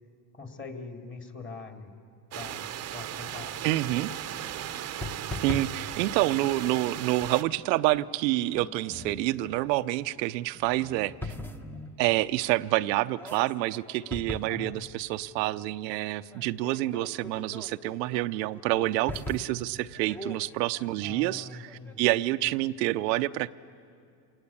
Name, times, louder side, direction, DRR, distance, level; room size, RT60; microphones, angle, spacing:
voice 1, 0.3-1.9 2.3-3.6 14.5-14.8 21.0-22.1, left 4 dB, 25° left, 4 dB, 2.6 m, -43 dB
sound 1, 2.3-7.4, right 11 dB, 30° right, 0.8 m, -37 dB
sound 2, 3.0-3.1 3.3-4.1 4.7-6.8 7.2-7.6 7.9-8.0 8.5-9.4 9.9-10.1 10.4-12.7 13.0-22.6, left 1 dB, 5° left, 0.8 m, -42 dB
voice 2, 3.6-4.1 5.4-11.3 12.0-23.5, right 17 dB, 90° right, 11 dB, 0.7 m, -28 dB
27.5 x 19.0 x 8.4 m, 2.4 s
supercardioid pair, 125°, 49 cm